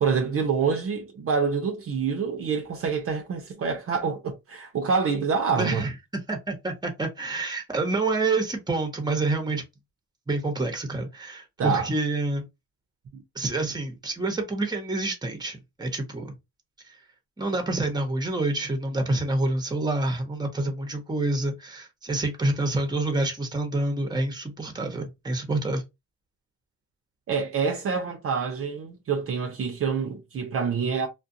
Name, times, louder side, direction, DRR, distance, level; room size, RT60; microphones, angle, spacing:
voice 1, 0.0-5.8 11.6-11.9 13.1-13.2 27.3-31.1, right 5 dB, 50° right, 0.6 m, -26 dB
voice 2, 5.5-5.9 6.3-9.6 10.3-12.5 13.3-16.3 17.4-25.8, right 2 dB, 15° right, 0.9 m, -27 dB
2.4 x 2.2 x 2.6 m
cardioid pair, 90°, 30 cm